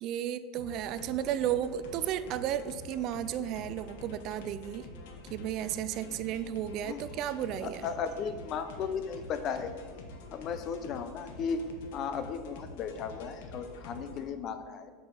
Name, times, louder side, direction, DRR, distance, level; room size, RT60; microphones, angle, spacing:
voice 1, 0.0-4.9 5.3-7.9, right 10 dB, 50° right, 14 dB, 0.3 m, -33 dB
sound 1, 0.6-14.3, left 2 dB, 75° left, 0.9 m, -47 dB
voice 2, 7.6-9.7 10.3-14.9, left 6 dB, 40° left, 10 dB, 0.6 m, -35 dB
5.6 x 4.8 x 6.1 m, 1.5 s
supercardioid pair, 135°, 0 cm